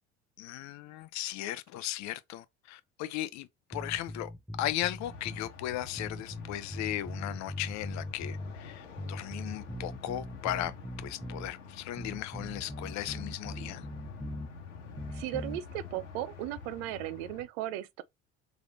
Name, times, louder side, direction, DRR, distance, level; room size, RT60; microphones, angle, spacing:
voice 1, 0.4-4.3 4.6-10.7 11.0-13.8, left 14 dB, 50° left, 0.6 m, -36 dB
sound 1, 3.7-5.5 6.0-8.6 9.0-11.5 12.0-14.5 15.0-15.6, left 1 dB, ahead, 0.3 m, -40 dB
sound 2, 5.0-17.4, left 5 dB, 85° left, 1.2 m, -48 dB
voice 2, 15.1-18.0, right 13 dB, 65° right, 0.6 m, -36 dB
3.6 x 3.4 x 3.2 m
hypercardioid pair, 70°, 35 cm